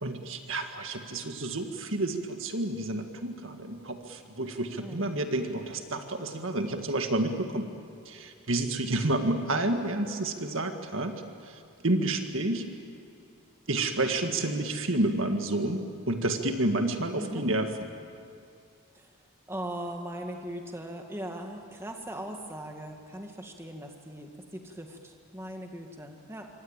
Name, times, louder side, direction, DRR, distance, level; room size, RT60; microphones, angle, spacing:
voice 1, 0.0-7.7 8.1-11.2 11.4-12.6 13.7-17.7, right 2 dB, 60° right, 5 dB, 1.9 m, -30 dB
voice 2, 4.8-5.2 17.2-17.5 18.9-19.2 19.5-26.5, right 1 dB, 10° right, 2 dB, 2.0 m, -39 dB
25.5 x 25.0 x 9.0 m, 2.4 s
head